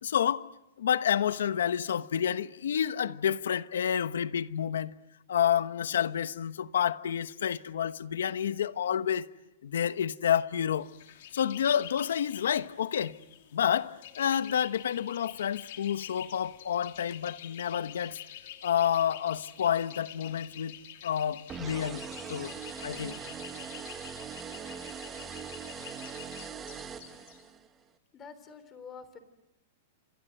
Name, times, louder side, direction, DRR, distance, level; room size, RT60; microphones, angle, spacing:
voice 1, 0.0-0.4 0.8-4.9 5.3-9.3 9.6-10.9 11.3-13.2 13.5-18.2 18.6-20.7 21.0-22.0 22.3-22.5 22.8-23.1, left 9 dB, 90° left, 1.1 m, -29 dB
sound 1, 10.8-27.4, left 12 dB, 60° left, 2.9 m, -48 dB
sound 2, 21.5-27.7, right 7 dB, 15° right, 2.0 m, -41 dB
voice 2, 28.1-29.2, left 6 dB, 20° left, 3.5 m, -47 dB
28.5 x 26.0 x 7.8 m
supercardioid pair, 155°, 0 cm